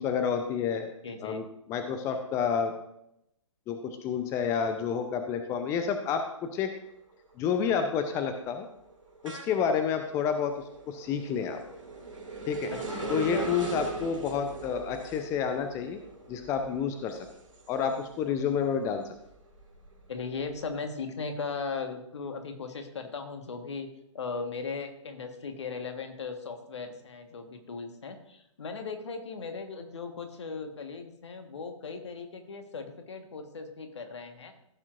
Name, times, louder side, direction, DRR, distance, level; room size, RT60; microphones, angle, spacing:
voice 1, 0.0-0.9 1.2-2.7 3.7-6.3 6.5-6.7 7.4-8.7 9.2-10.5 10.9-11.6 12.5-12.7 13.1-16.0 16.3-17.3 17.7-19.0, left 7 dB, 15° left, 7 dB, 0.6 m, -29 dB
voice 2, 1.0-1.4 12.7-13.5 20.1-23.9 24.1-34.5, left 4 dB, 60° left, 6 dB, 1.5 m, -38 dB
sound 1, 6.3-6.7 7.1-18.4 18.8-20.5, right 3 dB, 70° right, 2.4 m, -40 dB
15.0 x 7.2 x 2.6 m, 0.79 s
figure-of-eight pair, 125°, 17 cm